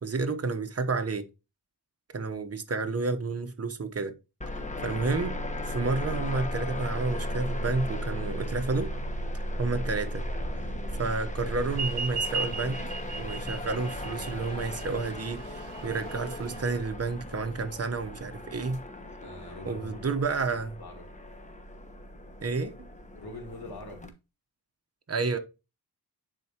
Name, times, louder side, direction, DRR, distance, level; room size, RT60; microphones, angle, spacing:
voice 1, 0.0-1.3 2.1-4.1 4.5-5.4 5.6-8.9 9.6-10.2 10.6-10.7 11.0-12.8 13.2-18.8 19.6-20.7 22.4-22.7 25.1-25.4, right 3 dB, 40° right, 1.0 m, -30 dB
sound 1, 4.4-24.1, equal, 20° left, 1.1 m, -36 dB
Thunder, 6.6-20.9, equal, 40° left, 2.3 m, -51 dB
sound 2, 11.7-16.7, right 4 dB, 75° right, 0.7 m, -36 dB
voice 2, 19.2-20.1 20.8-21.0 23.1-24.0, left 2 dB, 70° left, 3.3 m, -43 dB
10.5 x 4.3 x 2.9 m
wide cardioid pair, 80°, 39 cm